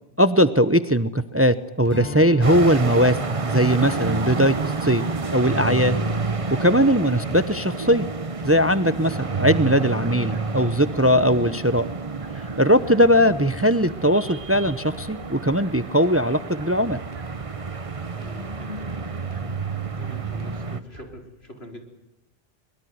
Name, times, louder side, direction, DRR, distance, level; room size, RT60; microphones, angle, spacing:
voice 1, 0.2-4.5 4.8-5.0 5.3-6.0 6.5-8.0 8.4-11.9 12.6-17.0, equal, 15° right, 13 dB, 0.9 m, -19 dB
Strum, 1.9-6.6, left 1 dB, 25° left, 6.0 m, -40 dB
sound 1, 2.4-20.8, right 4 dB, 35° right, 1.1 m, -29 dB
sound 2, 7.3-21.2, right 1 dB, 55° right, 3.1 m, -46 dB
voice 2, 18.2-19.0 19.9-21.8, left 1 dB, 80° left, 4 dB, 4.8 m, -44 dB
23.5 x 22.5 x 9.6 m, 0.84 s
omnidirectional pair, 1.0 m